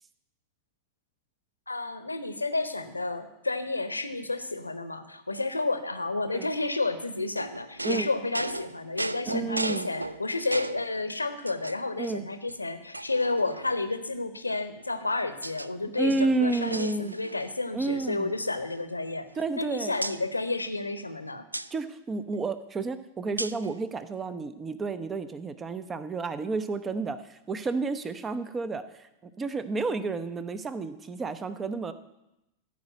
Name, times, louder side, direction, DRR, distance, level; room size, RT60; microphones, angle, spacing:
voice 1, 1.7-19.3 19.6-21.4, left 3 dB, 80° left, 10 dB, 0.9 m, -31 dB
sound 1, 7.3-10.9 11.5-12.1 12.5-12.6 12.9-14.0 14.8-15.7 16.0-17.5 17.8-18.0 18.3-19.6 20.0-20.2 21.5-21.7 23.4-23.7, right 2 dB, 85° right, 0.3 m, -36 dB
voice 2, 9.3-9.9 12.0-12.2 16.0-17.1 17.7-18.3 19.3-19.9 21.7-31.9, right 3 dB, 20° right, 13 dB, 0.8 m, -31 dB
14.5 x 4.9 x 8.8 m, 0.91 s
figure-of-eight pair, 90°, 0 cm